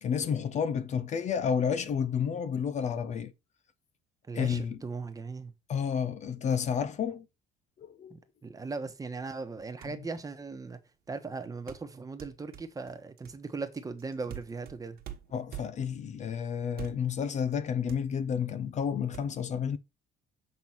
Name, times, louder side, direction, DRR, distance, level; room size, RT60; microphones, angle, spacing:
voice 1, 0.0-3.3 4.3-4.8 5.7-7.3 7.8-8.1 15.3-19.8, left 7 dB, 45° left, 0.5 m, -30 dB
voice 2, 4.3-5.5 8.1-10.8 11.1-15.0, right 4 dB, 20° right, 1.1 m, -38 dB
sound 1, 9.5-9.6 9.8-10.1 11.7-16.0 16.7-17.2 17.5-17.6 17.9-18.5 19.1-19.2, right 10 dB, 65° right, 1.3 m, -45 dB
7.3 x 3.7 x 4.5 m
cardioid pair, 110°, 17 cm